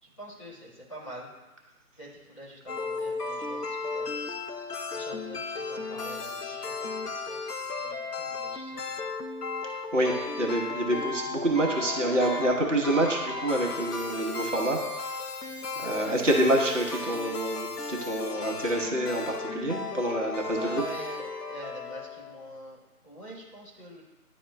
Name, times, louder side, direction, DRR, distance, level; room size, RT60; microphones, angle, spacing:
voice 1, 0.0-1.3 2.0-4.3 4.9-9.1 15.4-15.7 20.5-24.0, right 1 dB, 20° left, -9 dB, 1.4 m, -44 dB
sound 1, 2.7-22.6, left 3 dB, 80° left, 0.8 m, -35 dB
voice 2, 9.9-15.2 15.8-20.8, right 1 dB, 50° right, -1 dB, 1.1 m, -27 dB
11.0 x 4.2 x 2.2 m, 1.1 s
figure-of-eight pair, 155°, 46 cm